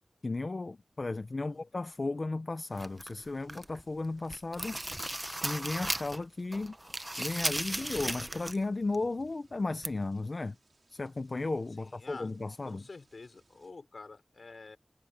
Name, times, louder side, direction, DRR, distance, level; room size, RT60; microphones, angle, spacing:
voice 1, 0.2-4.8 5.4-6.8 7.2-10.6 10.9-12.8, left 3 dB, 50° left, 0.7 m, -35 dB
voice 2, 1.4-1.7 7.7-7.9 11.8-12.3 12.6-14.8, left 3 dB, 65° left, 5.7 m, -49 dB
sound 1, 2.7-13.7, right 3 dB, 55° right, 4.1 m, -68 dB
sound 2, 2.8-3.8 4.2-6.2 6.5-8.6 8.9-9.0 9.8-9.9, right 1 dB, 15° right, 0.9 m, -36 dB
wide cardioid pair, 90°, 0 cm